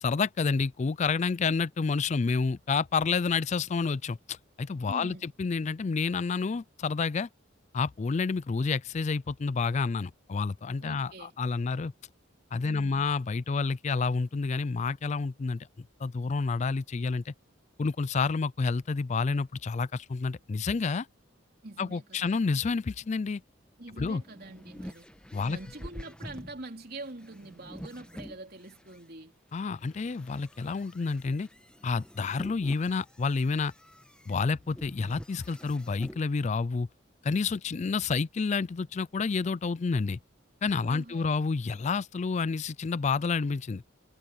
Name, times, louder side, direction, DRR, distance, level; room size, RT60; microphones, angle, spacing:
voice 1, 0.0-7.3 7.7-11.1 11.4-11.9 12.5-15.7 16.0-17.3 17.8-21.1 21.8-23.4 24.0-24.2 25.3-25.6 29.5-31.5 31.8-33.7 34.3-36.9 37.2-40.2 40.6-43.9, left 4 dB, 35° left, 0.4 m, -29 dB
voice 2, 4.9-5.3 10.8-11.3 12.6-13.1 21.6-22.4 23.8-25.1 25.4-29.3 40.8-41.4, right 2 dB, 50° right, 3.4 m, -44 dB
sound 1, 24.0-29.0 29.6-36.2, equal, 5° left, 1.9 m, -47 dB
head